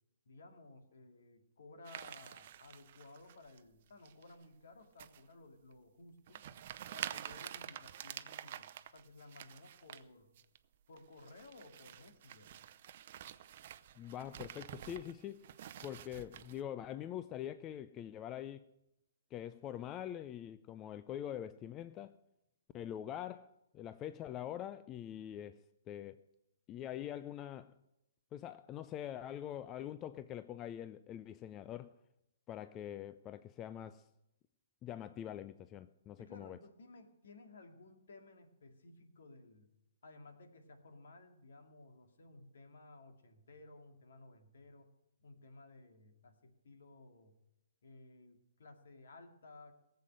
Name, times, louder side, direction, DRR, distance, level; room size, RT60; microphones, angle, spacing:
voice 1, 0.3-6.4 6.9-10.3 10.9-12.5 36.2-39.7 40.0-44.9 45.2-47.3 47.8-49.7, left 2 dB, 65° left, 2.3 m, -57 dB
sound 1, 1.9-3.6 4.1-4.5 5.0-5.2 5.7-5.8 6.3-10.0 10.4-10.6 11.0-16.6, right 11 dB, 50° right, 0.7 m, -48 dB
voice 2, 14.0-15.4 15.8-18.7 19.3-22.2 22.7-26.2 26.7-27.7 28.3-32.0 32.5-34.1 34.8-36.6, left 11 dB, 25° left, 0.4 m, -44 dB
18.0 x 7.7 x 7.7 m
figure-of-eight pair, 130°, 0 cm